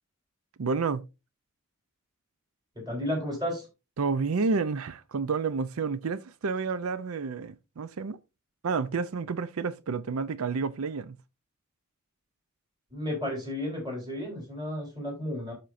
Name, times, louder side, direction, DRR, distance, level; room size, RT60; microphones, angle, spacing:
voice 1, 0.6-1.1 4.0-8.2 8.6-11.2, right 4 dB, 80° right, 0.5 m, -30 dB
voice 2, 2.9-3.7 12.9-15.5, left 1 dB, 20° right, 3.9 m, -32 dB
13.0 x 4.4 x 2.6 m
head